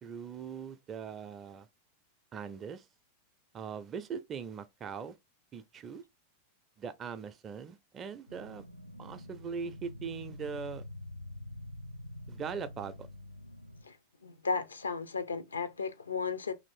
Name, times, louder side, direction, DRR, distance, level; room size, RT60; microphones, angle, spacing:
voice 1, 0.0-1.7 2.3-2.9 3.5-5.2 5.5-6.0 6.8-8.6 9.0-10.8 12.3-13.1, right 6 dB, 25° right, 0.5 m, -41 dB
sound 1, 8.3-13.8, left 1 dB, 85° right, 0.3 m, -46 dB
voice 2, 14.2-16.5, left 4 dB, 75° left, 0.5 m, -34 dB
3.0 x 2.6 x 4.3 m
figure-of-eight pair, 90°, 0 cm